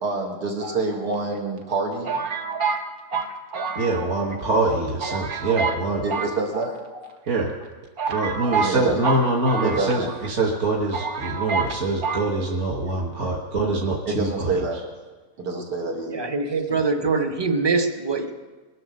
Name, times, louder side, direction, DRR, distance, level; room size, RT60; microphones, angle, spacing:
voice 1, 0.0-2.2 6.0-6.7 8.6-9.0 9.6-10.1 14.0-14.8 15.4-16.2, right 3 dB, 80° right, 1 dB, 2.5 m, -27 dB
sound 1, 0.6-1.4 2.1-4.4 4.6-4.7 5.0-5.8 6.1-7.1 7.6-7.7 8.0-10.3 10.6-10.7 10.9-11.8 12.0-12.3, right 5 dB, 65° right, 1.5 m, -28 dB
voice 2, 3.8-6.0 7.3-7.5 8.1-14.5, right 2 dB, 45° right, -2 dB, 1.5 m, -24 dB
voice 3, 16.1-18.3, right 4 dB, 20° right, 6 dB, 0.7 m, -23 dB
21.5 x 7.8 x 6.5 m, 1.3 s
omnidirectional pair, 1.8 m